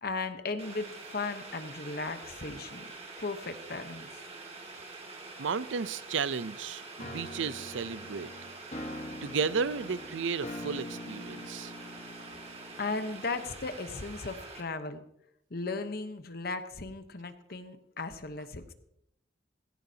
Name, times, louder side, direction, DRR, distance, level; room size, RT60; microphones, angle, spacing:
voice 1, 0.0-2.9 3.2-4.1 12.8-15.0 15.5-18.7, left 3 dB, 55° left, 9 dB, 1.0 m, -36 dB
Boiling, 0.6-14.6, right 3 dB, 35° right, 2.0 m, -46 dB
voice 2, 5.4-8.3 9.2-11.7, right 5 dB, 90° right, 17 dB, 0.5 m, -33 dB
sound 1, 7.0-13.8, left 1 dB, 35° left, 1.3 m, -44 dB
16.5 x 16.5 x 2.8 m, 0.76 s
head